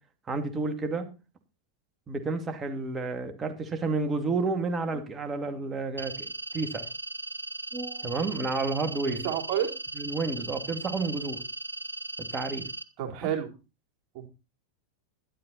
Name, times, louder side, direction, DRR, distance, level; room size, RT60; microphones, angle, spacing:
voice 1, 0.3-1.1 2.1-6.3 6.5-6.9 7.7-9.3 10.0-11.4 12.3-12.7, right 3 dB, 20° right, 6 dB, 2.4 m, -30 dB
sound 1, 6.0-12.8, right 2 dB, 85° right, 0.8 m, -38 dB
voice 2, 9.0-9.7 13.0-13.5 14.1-14.3, right 10 dB, 45° right, 3 dB, 3.6 m, -30 dB
12.0 x 11.5 x 4.3 m, 0.31 s
figure-of-eight pair, 90°, 0 cm